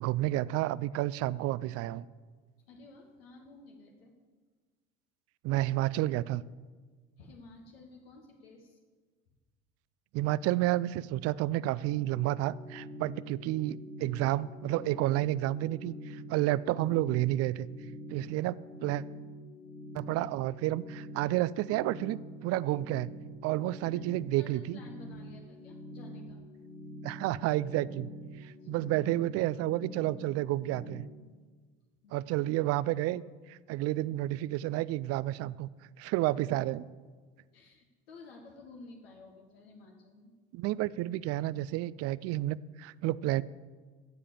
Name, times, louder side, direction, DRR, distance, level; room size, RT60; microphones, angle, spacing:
voice 1, 0.0-2.0 5.4-6.4 10.1-17.7 18.1-19.0 19.9-23.1 23.4-24.8 27.0-28.1 28.4-31.1 32.1-33.2 33.5-35.7 36.0-36.9 40.5-43.4, right 16 dB, 55° right, 20 dB, 0.4 m, -30 dB
voice 2, 2.7-4.1 7.2-8.8 23.8-24.0 24.4-26.4 28.4-28.8 32.0-32.1 37.5-40.3, left 3 dB, 85° left, 1 dB, 1.5 m, -53 dB
sound 1, 12.1-31.0, equal, 5° left, 1.3 m, -46 dB
14.5 x 5.0 x 7.1 m, 1.4 s
hypercardioid pair, 75°, 29 cm